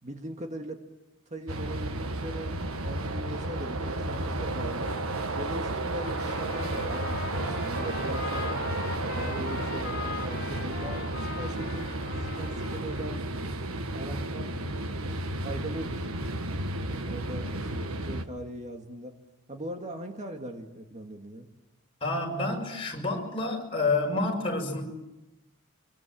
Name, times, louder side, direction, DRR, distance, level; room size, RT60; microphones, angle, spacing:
voice 1, 0.0-0.8 1.3-2.6 2.9-5.0 5.3-8.5 9.1-11.0 11.3-11.9 12.4-13.2 13.9-14.5 15.4-16.0 16.8-19.2 19.5-21.5, right 1 dB, 35° right, 4 dB, 2.0 m, -40 dB
sound 1, 1.5-18.3, right 1 dB, 90° right, 1.5 m, -32 dB
Trumpet, 6.0-13.1, left 6 dB, 50° left, 1.9 m, -41 dB
voice 2, 22.0-24.8, left 3 dB, 25° left, 1 dB, 5.9 m, -28 dB
25.0 x 23.5 x 7.6 m, 0.98 s
head